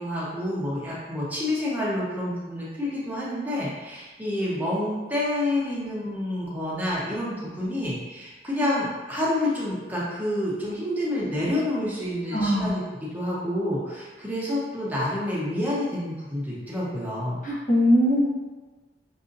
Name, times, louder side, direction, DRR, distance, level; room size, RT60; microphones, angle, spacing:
voice 1, 0.0-17.4, left 1 dB, 10° right, -7 dB, 0.7 m, -28 dB
voice 2, 12.3-12.7 17.4-18.3, equal, 45° left, -4 dB, 0.9 m, -21 dB
5.4 x 2.6 x 2.5 m, 1.2 s
head